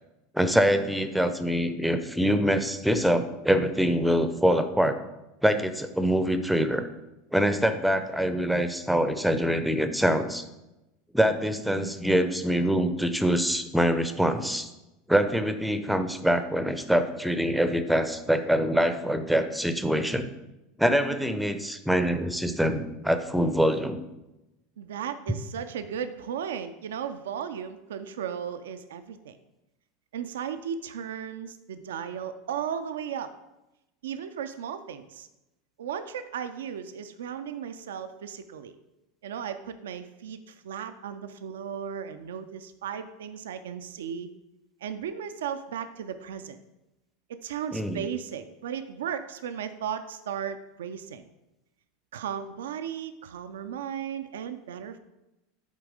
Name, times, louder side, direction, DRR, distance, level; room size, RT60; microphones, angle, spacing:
voice 1, 0.3-5.0 5.4-6.9 7.3-10.4 11.1-14.7 15.1-20.3 20.8-24.0 47.7-48.0, equal, ahead, 9 dB, 0.6 m, -24 dB
voice 2, 24.8-29.4 30.1-33.3 34.0-35.3 35.8-38.7 39.2-44.3 44.8-46.6 47.3-51.2 52.1-55.0, right 8 dB, 75° right, 10 dB, 0.4 m, -35 dB
8.2 x 3.5 x 4.8 m, 0.96 s
hypercardioid pair, 85°, 0 cm